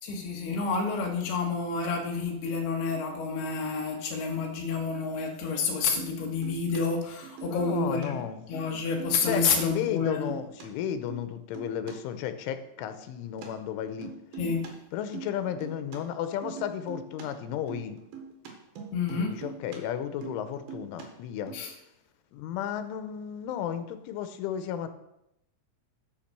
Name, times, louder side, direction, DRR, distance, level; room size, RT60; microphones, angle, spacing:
voice 1, 0.0-8.2 8.5-10.3 14.4-14.7 18.9-19.3 21.5-21.7, left 4 dB, 65° left, 1 dB, 3.4 m, -29 dB
sound 1, 6.0-6.2 6.4-6.8 7.2-8.1 8.4-8.7 9.0-9.4 9.8-10.6 11.1-11.3 11.5-11.9 13.4-13.5 14.0-14.7 15.0-16.0 16.4-17.3 17.5-19.8 20.1-21.1 21.5-21.6, right 7 dB, 60° right, 3.2 m, -42 dB
voice 2, 7.5-8.4 9.2-14.1 14.9-18.0 19.1-21.6 22.3-24.9, left 9 dB, 90° left, 10 dB, 3.3 m, -33 dB
12.0 x 5.9 x 6.7 m, 0.85 s
omnidirectional pair, 5.4 m